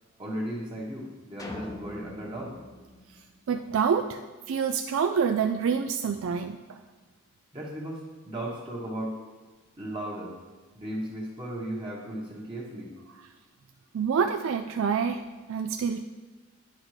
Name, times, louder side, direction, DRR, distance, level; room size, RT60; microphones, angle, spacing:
voice 1, 0.2-2.6 7.5-9.2 9.8-10.3 10.7-12.9, right 1 dB, 25° right, -3 dB, 1.1 m, -36 dB
sound 1, 1.4-3.8, left 1 dB, 15° left, 0.7 m, -42 dB
voice 2, 3.5-4.2 4.5-6.8 13.9-16.0, right 6 dB, 70° right, 6 dB, 0.3 m, -27 dB
10.5 x 5.1 x 3.2 m, 1.3 s
head